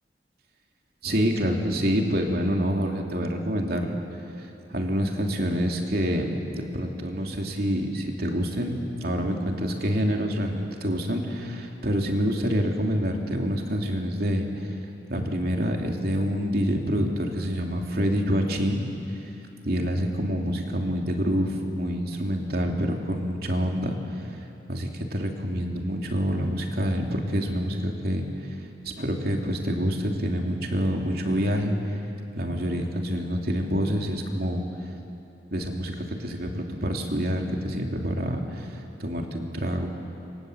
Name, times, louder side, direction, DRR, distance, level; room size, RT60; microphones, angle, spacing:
voice 1, 1.0-4.0 4.4-14.7 15.1-19.2 19.6-24.0 24.7-28.2 28.8-31.8 32.3-34.7 35.5-39.9, equal, 60° right, 2 dB, 3.0 m, -27 dB
28.0 x 25.5 x 8.1 m, 2.8 s
head